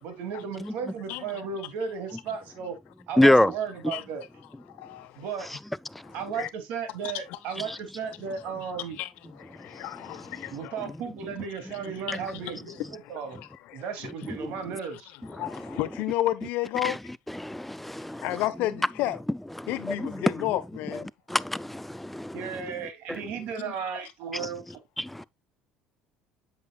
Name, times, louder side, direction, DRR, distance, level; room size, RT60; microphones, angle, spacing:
voice 1, 0.0-2.8 3.1-4.2 5.2-5.5 6.1-9.0 10.5-13.4 13.7-15.1 22.3-24.6, right 6 dB, 70° right, 2.6 m, -35 dB
voice 2, 3.2-3.5 5.9-6.0 10.3-10.4 12.1-12.2 14.3-14.4 15.4-15.6 16.8-17.0 17.3-18.3 19.6-20.2 21.3-22.4 23.1-23.2 25.0-25.2, left 1 dB, 5° left, 0.4 m, -25 dB
voice 3, 4.7-5.3 6.0-6.5 7.0-7.4 9.0-9.1 9.4-10.8 11.7-11.8 12.1-12.2 13.0-13.8 15.3-17.0 18.2-19.2 19.7-21.1 23.6-23.7, left 15 dB, 70° left, 0.9 m, -32 dB
8.1 x 6.8 x 2.4 m
supercardioid pair, 80°, 3 cm